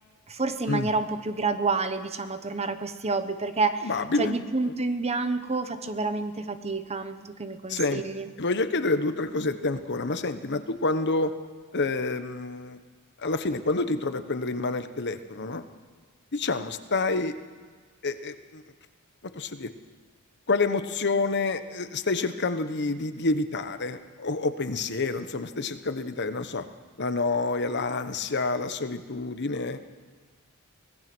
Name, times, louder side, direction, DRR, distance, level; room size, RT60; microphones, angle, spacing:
voice 1, 0.3-3.9 4.2-8.3, right 3 dB, 30° right, 9 dB, 1.1 m, -29 dB
voice 2, 3.8-4.3 4.6-4.7 7.7-8.0 8.4-11.3 11.7-12.8 13.2-15.6 16.3-17.3 18.0-18.6 19.3-19.7 20.5-26.6 27.0-29.8, left 3 dB, 55° left, 10 dB, 1.1 m, -28 dB
24.5 x 18.0 x 6.2 m, 1.5 s
head